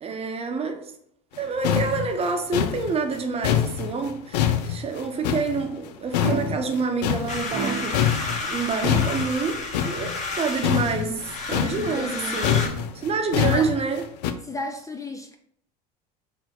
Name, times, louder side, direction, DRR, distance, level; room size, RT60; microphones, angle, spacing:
voice 1, 0.0-0.9 1.4-11.1 11.5-14.1, right 4 dB, 30° right, 0.8 m, -28 dB
sound 1, 1.4-1.5 1.6-5.9 6.1-7.7 7.9-14.3, left 9 dB, 80° left, 0.5 m, -25 dB
sound 2, 6.2-6.8 7.5-8.2 8.8-9.0, right 4 dB, 90° right, 1.4 m, -30 dB
sound 3, 7.3-12.7, left 3 dB, 35° left, 1.3 m, -32 dB
voice 2, 11.8-12.4 13.4-13.7 14.4-15.4, left 3 dB, 15° left, 0.4 m, -33 dB
3.9 x 2.7 x 4.4 m
hypercardioid pair, 95°, 21 cm